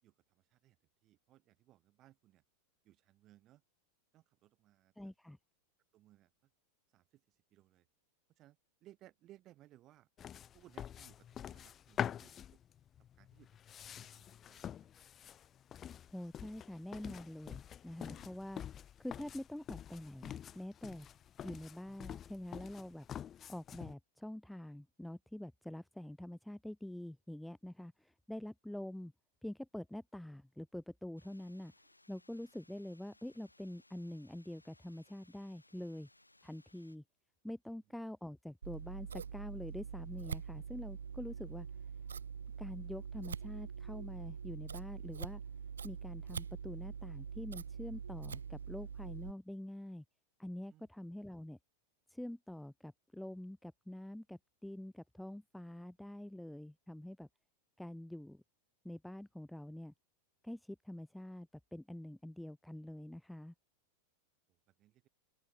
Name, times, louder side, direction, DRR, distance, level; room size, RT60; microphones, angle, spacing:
voice 1, 0.0-0.8 1.0-2.4 2.8-3.6 4.1-4.9 5.9-6.5 6.9-7.9 8.4-10.1 10.5-12.6 13.2-14.8 18.1-18.3 50.7-50.9 64.5-65.1, right 14 dB, 35° right, 6.6 m, -64 dB
voice 2, 5.0-5.4 16.1-18.6 19.0-21.1 21.4-23.1 23.5-29.1 29.4-31.7 32.1-36.1 36.4-37.0 37.4-41.7 42.6-45.4 45.8-50.0 50.4-51.6 52.1-57.3 57.8-58.4 58.8-59.9 60.4-63.5, left 1 dB, ahead, 0.7 m, -46 dB
sound 1, 10.2-23.9, left 9 dB, 25° left, 1.0 m, -46 dB
sound 2, 31.2-37.0, left 2 dB, 85° left, 6.5 m, -67 dB
Scissors, 38.6-49.3, right 6 dB, 70° right, 2.1 m, -44 dB
open air
figure-of-eight pair, 90°, 0 cm